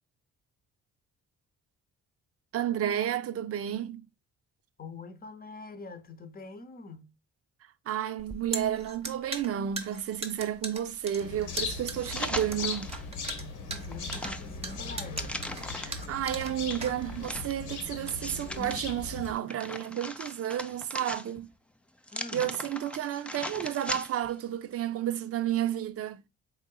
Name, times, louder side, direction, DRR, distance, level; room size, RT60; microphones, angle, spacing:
voice 1, 2.5-4.1 7.9-12.9 15.7-21.5 22.3-26.2, right 10 dB, 50° right, 0.5 m, -31 dB
voice 2, 4.8-7.1 13.6-15.4 22.1-22.5, left 3 dB, 30° left, 0.7 m, -44 dB
sound 1, 8.2-17.4, right 3 dB, 20° right, 0.8 m, -39 dB
sound 2, 11.2-19.3, left 4 dB, 80° left, 1.1 m, -39 dB
sound 3, 11.9-13.1 13.5-16.1 16.7-18.8 19.2-21.6 22.0-24.3 24.7-24.8, left 1 dB, 5° left, 0.4 m, -39 dB
3.7 x 3.7 x 2.2 m
cardioid pair, 90°, 30 cm